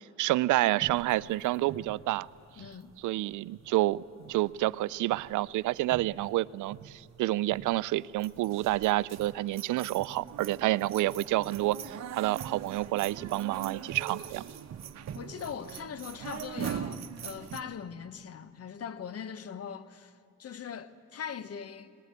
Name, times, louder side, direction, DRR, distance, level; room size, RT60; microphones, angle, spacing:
voice 1, 0.2-2.3 3.0-4.0 4.3-14.4, right 17 dB, 85° right, 0.5 m, -29 dB
sound 1, 0.8-3.2 3.5-3.9 4.2-4.8 5.1-5.4 5.8-6.4 6.7-7.1 7.5-7.9 8.2-17.6, right 8 dB, 60° right, 1.3 m, -42 dB
voice 2, 2.6-2.9 15.1-22.0, left 7 dB, 55° left, 1.2 m, -41 dB
21.5 x 20.0 x 9.7 m
cardioid pair, 90°, 30 cm